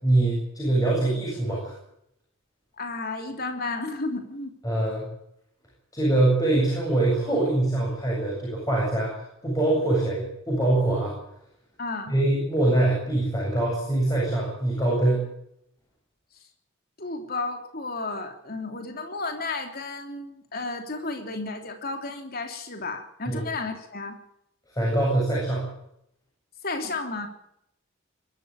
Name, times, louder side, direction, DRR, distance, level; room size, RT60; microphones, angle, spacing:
voice 1, 0.0-1.8 4.6-5.0 5.9-11.1 12.1-15.2 23.3-23.5 24.7-25.7, right 2 dB, 15° left, -4 dB, 7.8 m, -23 dB
voice 2, 2.8-4.5 11.8-12.1 17.0-24.2 26.6-27.3, left 3 dB, 45° left, 5 dB, 3.3 m, -32 dB
22.5 x 13.5 x 8.8 m, 0.75 s
head